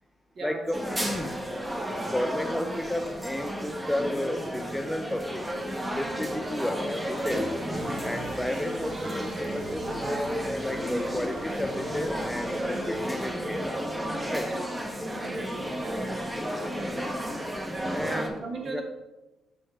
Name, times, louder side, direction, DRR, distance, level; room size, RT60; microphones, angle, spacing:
voice 1, 0.4-1.3 2.1-5.5 6.0-7.5 8.0-13.7 14.3-14.5 17.9-18.8, left 1 dB, 10° left, 7 dB, 0.4 m, -32 dB
sound 1, 0.7-18.3, equal, 15° right, 0.9 m, -32 dB
sound 2, 7.7-13.0, right 6 dB, 80° right, 0.4 m, -47 dB
voice 2, 15.2-16.1 18.0-18.8, right 3 dB, 55° right, 1 dB, 1.3 m, -37 dB
5.4 x 5.4 x 3.3 m, 1.0 s
cardioid pair, 90°, 0 cm